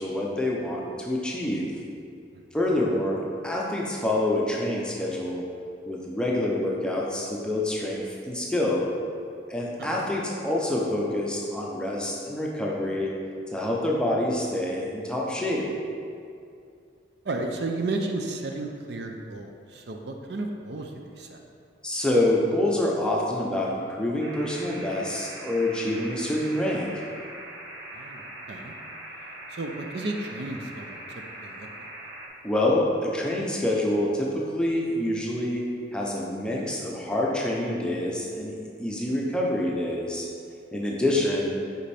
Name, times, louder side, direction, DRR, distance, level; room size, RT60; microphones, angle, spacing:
voice 1, 0.0-1.7 2.5-5.4 5.9-8.8 9.5-13.1 13.5-15.6 21.8-26.9 32.4-35.6 35.9-38.5 38.8-40.3 40.7-41.5, left 1 dB, 5° left, -3 dB, 0.6 m, -26 dB
voice 2, 17.2-21.4 27.9-28.7 29.5-31.9 40.8-40.9, right 2 dB, 60° right, 3 dB, 0.5 m, -33 dB
sound 1, 24.2-32.3, right 1 dB, 85° right, 1.0 m, -41 dB
5.2 x 5.1 x 4.3 m, 2.4 s
head